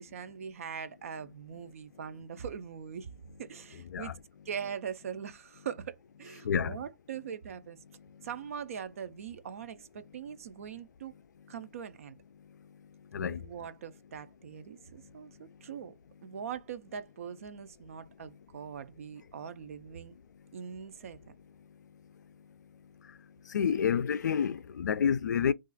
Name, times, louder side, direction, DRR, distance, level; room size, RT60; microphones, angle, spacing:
voice 1, 0.0-3.1 3.4-4.2 4.5-7.8 8.2-11.1 11.5-12.1 13.2-15.9 16.2-20.2 20.5-21.2, right 7 dB, 50° right, 0.4 m, -42 dB
voice 2, 6.4-6.8 8.2-8.3 13.1-13.5 23.1-23.2 23.5-25.5, left 7 dB, 70° left, 0.4 m, -29 dB
2.4 x 2.3 x 3.8 m
hypercardioid pair, 160°, 10 cm